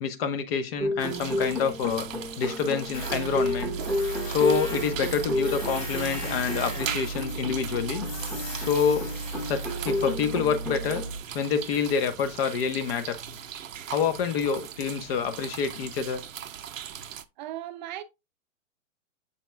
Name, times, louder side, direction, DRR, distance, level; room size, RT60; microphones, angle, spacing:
voice 1, 0.0-2.1 2.4-3.7 4.3-8.1 8.6-9.1 9.5-11.0 11.3-13.2 13.9-16.2, left 6 dB, 45° left, 1.1 m, -27 dB
sound 1, 0.8-11.1, left 1 dB, 5° left, 1.0 m, -32 dB
sound 2, 1.0-17.2, right 9 dB, 75° right, 0.7 m, -40 dB
Tools, 2.9-11.2, right 2 dB, 80° left, 4.2 m, -35 dB
voice 2, 17.4-18.0, right 13 dB, 35° right, 0.6 m, -36 dB
7.1 x 5.7 x 2.4 m
hypercardioid pair, 115°, 40 cm